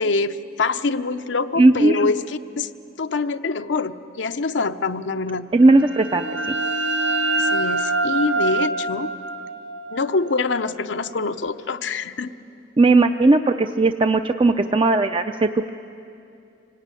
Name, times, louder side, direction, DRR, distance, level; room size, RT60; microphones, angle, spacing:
voice 1, 0.0-2.7 3.0-5.5 7.4-9.1 9.9-12.3, left 3 dB, 85° left, 9 dB, 0.7 m, -25 dB
voice 2, 1.6-2.0 5.5-6.6 12.8-15.7, right 2 dB, 30° right, 8 dB, 0.5 m, -17 dB
sound 1, 5.7-11.2, right 2 dB, 85° right, 1.4 m, -25 dB
25.0 x 18.0 x 9.1 m, 2.7 s
head